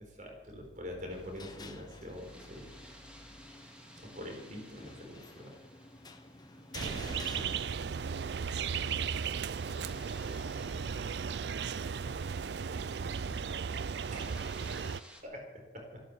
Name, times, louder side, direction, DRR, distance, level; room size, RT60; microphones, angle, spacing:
voice 1, 0.0-2.7 4.0-5.5 7.6-7.9 14.1-14.3 15.2-16.0, left 1 dB, 45° right, 2 dB, 4.1 m, -45 dB
sound 1, 1.0-8.3, left 2 dB, 20° left, 1.1 m, -49 dB
sound 2, 1.1-15.2, equal, 5° right, 2.1 m, -57 dB
voice 2, 6.5-6.9 14.9-15.3, right 1 dB, 85° right, 1 dB, 2.8 m, -61 dB
sound 3, 6.7-15.0, right 6 dB, 65° right, 0.4 m, -36 dB
14.0 x 12.0 x 8.1 m, 1.2 s
head